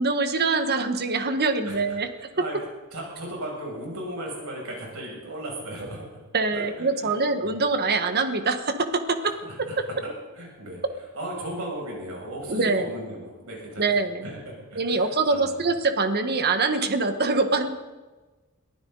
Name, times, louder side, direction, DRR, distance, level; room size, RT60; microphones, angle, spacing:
voice 1, 0.0-2.1 6.3-9.2 12.5-12.9 13.8-14.2 14.8-17.7, right 3 dB, 45° right, 8 dB, 1.5 m, -24 dB
voice 2, 1.6-2.6 2.9-6.1 6.5-7.2 7.4-7.6 9.2-10.8 11.1-13.8 14.2-15.6, right 1 dB, 70° right, -2 dB, 7.0 m, -36 dB
23.0 x 15.0 x 4.0 m, 1.3 s
head